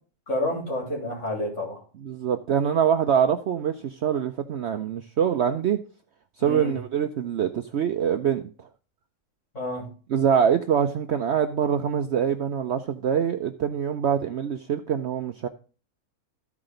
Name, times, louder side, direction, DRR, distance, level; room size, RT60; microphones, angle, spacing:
voice 1, 0.3-1.8 6.4-6.8 9.5-9.9, left 1 dB, 50° left, -2 dB, 4.0 m, -29 dB
voice 2, 2.0-5.8 6.4-8.4 10.1-15.5, right 8 dB, 60° right, 7 dB, 0.7 m, -24 dB
14.0 x 4.8 x 3.8 m, 0.37 s
omnidirectional pair, 1.6 m